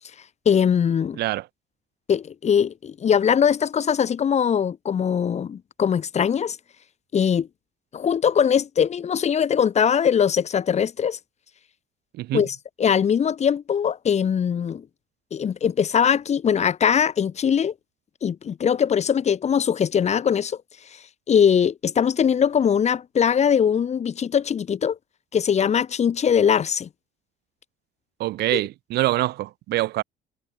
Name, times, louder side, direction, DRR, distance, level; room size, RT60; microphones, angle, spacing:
voice 1, 0.5-1.2 2.1-6.6 7.1-7.5 7.9-11.2 12.3-14.8 15.3-17.7 18.2-20.6 21.3-25.0 25.3-26.9 28.5-28.6, left 8 dB, 40° left, 2.4 m, -21 dB
voice 2, 28.2-30.0, right 16 dB, 75° right, 1.3 m, -24 dB
cardioid pair, 110°, 17 cm